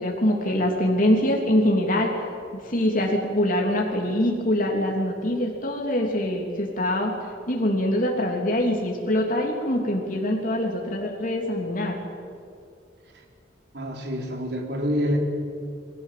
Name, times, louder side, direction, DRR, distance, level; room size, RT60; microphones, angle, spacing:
voice 1, 0.0-2.1 2.5-7.2 7.5-12.0, left 1 dB, 50° left, 0 dB, 3.2 m, -24 dB
voice 2, 13.7-15.2, equal, 65° right, 1 dB, 3.9 m, -27 dB
28.5 x 21.5 x 7.7 m, 2.4 s
head